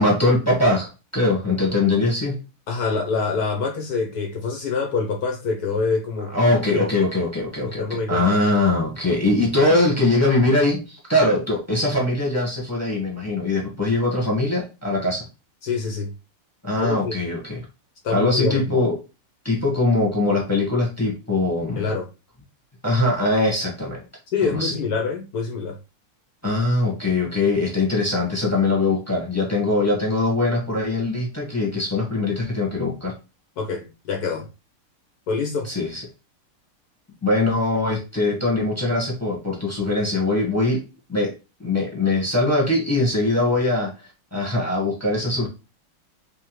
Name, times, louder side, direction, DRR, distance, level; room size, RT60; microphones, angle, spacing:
voice 1, 0.0-2.4 6.2-15.2 16.6-17.6 18.1-18.9 19.4-21.9 22.8-24.0 24.4-24.8 26.4-33.1 35.6-36.0 37.2-40.8 41.1-41.3 41.6-45.5, left 2 dB, 10° left, 1.0 m, -22 dB
voice 2, 2.7-6.9 7.8-8.2 15.6-16.1 16.8-17.1 18.0-18.6 21.8-22.1 24.3-25.8 33.6-34.5 35.3-35.7, left 4 dB, 65° left, 0.9 m, -25 dB
3.5 x 3.2 x 3.0 m
omnidirectional pair, 2.4 m